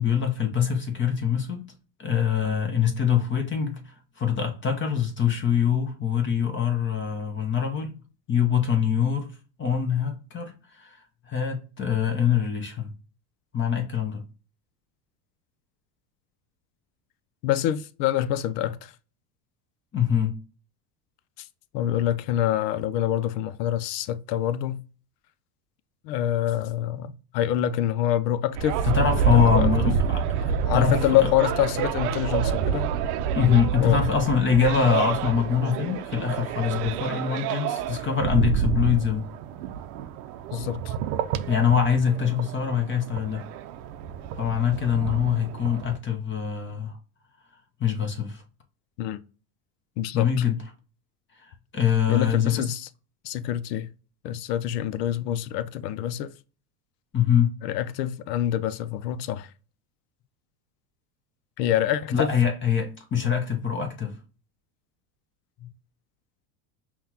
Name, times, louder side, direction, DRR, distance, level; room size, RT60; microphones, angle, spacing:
voice 1, 0.0-1.7 2.0-7.9 8.3-9.3 9.6-11.0 11.3-12.9 13.5-14.2 19.9-20.4 28.8-30.4 30.7-31.3 33.3-39.3 41.5-43.4 44.4-47.0 47.8-48.4 50.1-50.6 51.4-52.6 57.1-57.5 62.1-64.2 65.6-65.7, left 7 dB, 25° left, 0.7 m, -24 dB
voice 2, 17.4-18.9 21.4-21.5 21.7-24.8 26.0-28.8 29.3-29.7 30.6-32.9 33.8-34.0 40.5-40.9 49.0-49.2 50.0-50.3 52.1-52.9 53.2-53.9 54.2-56.3 57.6-59.5 61.6-62.3, left 11 dB, 80° left, 0.6 m, -26 dB
sound 1, 28.5-46.0, right 8 dB, 70° right, 0.6 m, -28 dB
5.7 x 2.3 x 2.8 m
supercardioid pair, 120°, 47 cm